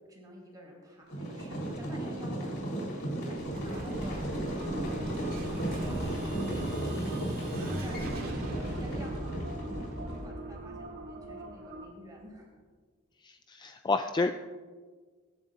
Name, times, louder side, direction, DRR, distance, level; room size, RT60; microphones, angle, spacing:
voice 1, 0.1-2.5 3.2-8.5 8.7-9.3 10.0-12.5, equal, 20° right, -2 dB, 4.4 m, -49 dB
sound 1, 1.1-10.2, right 1 dB, 80° left, 3.7 m, -35 dB
Explosion, 3.4-12.0, right 1 dB, 45° right, 2.2 m, -40 dB
sound 2, 4.5-11.8, right 1 dB, 85° right, 2.7 m, -44 dB
voice 2, 13.5-14.3, left 3 dB, 20° left, 7 dB, 0.3 m, -28 dB
22.5 x 10.5 x 2.5 m, 1.5 s
head